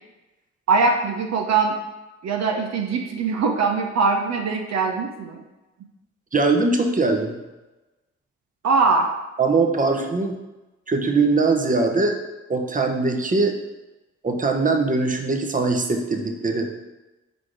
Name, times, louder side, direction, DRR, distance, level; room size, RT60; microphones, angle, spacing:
voice 1, 0.7-1.8 2.2-5.4 8.6-9.1, right 4 dB, 65° right, 2 dB, 0.8 m, -21 dB
voice 2, 6.3-7.4 9.4-10.3 10.9-12.1 12.5-13.5 14.2-16.7, right 3 dB, 25° right, 3 dB, 1.0 m, -21 dB
4.9 x 4.1 x 4.9 m, 1.1 s
supercardioid pair, 45°, 29 cm